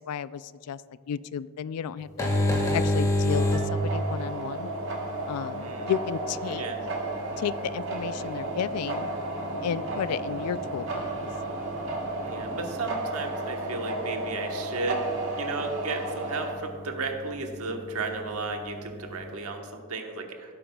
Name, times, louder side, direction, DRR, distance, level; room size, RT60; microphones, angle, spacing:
voice 1, 0.1-0.8 1.1-2.3 2.7-4.7 5.3-6.6 7.4-9.1 9.6-11.1, left 8 dB, 90° left, 17 dB, 0.3 m, -32 dB
sound 1, 2.0-19.3, left 1 dB, 15° left, 1.8 m, -33 dB
sound 2, 3.3-16.5, right 2 dB, 60° right, 1.3 m, -33 dB
voice 2, 5.6-5.9 6.5-6.8 12.2-15.1 15.4-20.5, right 3 dB, 80° right, 3 dB, 1.2 m, -34 dB
sound 3, 6.4-13.7, equal, 10° right, 2.8 m, -47 dB
16.5 x 8.7 x 2.3 m, 2.1 s
head